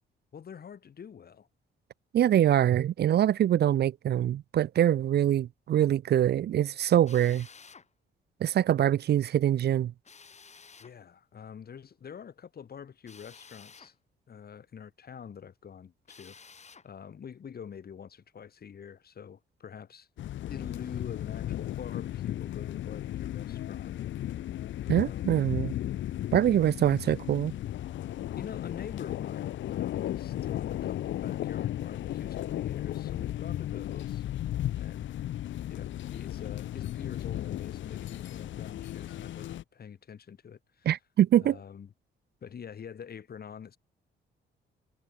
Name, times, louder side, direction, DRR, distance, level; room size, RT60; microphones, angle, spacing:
voice 1, 0.3-1.5 10.8-13.9 14.3-16.4 16.8-20.1 20.5-23.9 24.9-25.6 28.4-34.2 34.7-35.1 35.7-40.9 41.4-41.9 42.4-43.8, left 7 dB, 50° left, 5.8 m, -45 dB
voice 2, 2.1-7.5 8.4-9.9 24.9-25.7 26.3-27.5 40.9-41.6, right 11 dB, 55° right, 0.6 m, -24 dB
Drill, 7.1-7.9 10.0-11.0 13.1-13.9 16.1-16.9, left 5 dB, 35° left, 3.7 m, -52 dB
sound 1, 20.2-39.6, left 13 dB, 70° left, 1.1 m, -35 dB
cardioid pair, 90°, 20 cm